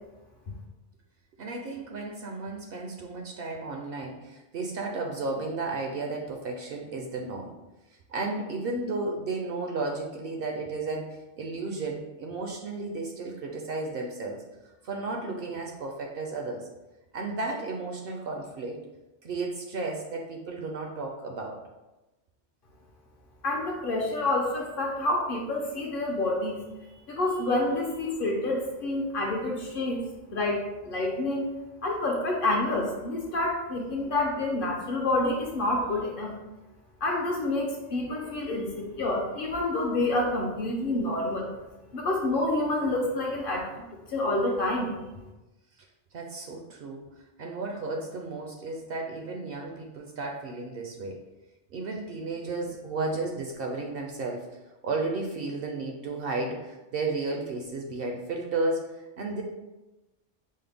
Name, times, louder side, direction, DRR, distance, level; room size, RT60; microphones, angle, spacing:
voice 1, 1.4-7.5 8.1-14.4 14.8-16.7 17.1-18.8 19.2-21.6 45.8-45.9 46.1-47.1 47.4-51.2 51.7-54.5 54.8-58.8 59.2-59.4, right 3 dB, 60° right, 1 dB, 0.6 m, -33 dB
voice 2, 23.4-26.6 27.1-30.0 30.3-31.5 31.8-36.3 37.0-41.5 41.9-43.7 44.1-45.0, left 2 dB, 55° left, 0 dB, 0.8 m, -28 dB
5.4 x 2.1 x 3.4 m, 1.0 s
omnidirectional pair, 1.2 m